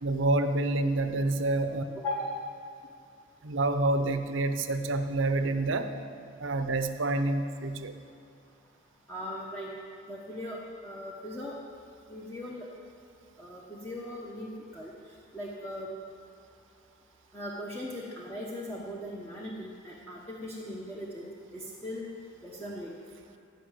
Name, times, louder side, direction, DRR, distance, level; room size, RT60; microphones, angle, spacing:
voice 1, 0.0-1.8 3.4-5.9 6.4-7.9, right 2 dB, 75° right, 8 dB, 0.8 m, -28 dB
voice 2, 2.0-2.4 9.1-9.7 10.1-11.6 12.1-12.7 13.4-14.9 15.3-15.9 17.3-22.1 22.4-22.9, left 1 dB, 10° left, -5 dB, 1.1 m, -39 dB
15.0 x 5.9 x 9.1 m, 2.5 s
head